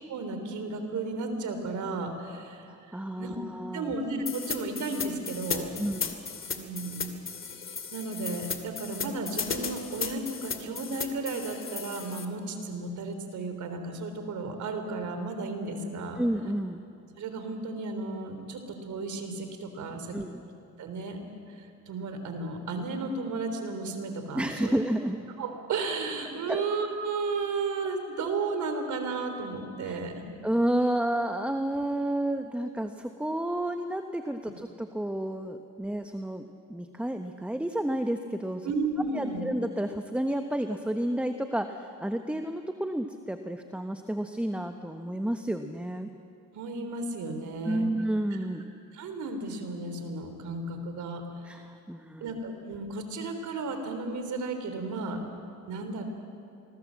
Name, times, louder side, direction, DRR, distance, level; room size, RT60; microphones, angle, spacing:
voice 1, 0.1-3.3 3.7-5.8 6.6-7.2 7.9-16.2 17.2-20.2 20.8-21.2 21.6-24.7 25.4-30.3 38.6-39.5 46.5-47.9 48.9-51.2 52.2-55.2 55.7-56.0, right 3 dB, 75° right, 6 dB, 3.6 m, -34 dB
voice 2, 2.7-3.9 5.8-6.2 16.2-16.9 20.1-20.4 24.3-25.2 26.5-26.6 29.8-30.0 30.4-36.4 36.7-38.7 39.1-46.1 47.6-48.6 51.4-52.3, right 1 dB, 5° right, 7 dB, 1.1 m, -31 dB
sound 1, 4.3-12.3, left 6 dB, 40° left, 2.6 m, -35 dB
26.5 x 20.5 x 7.6 m, 2.6 s
cardioid pair, 90°, 30 cm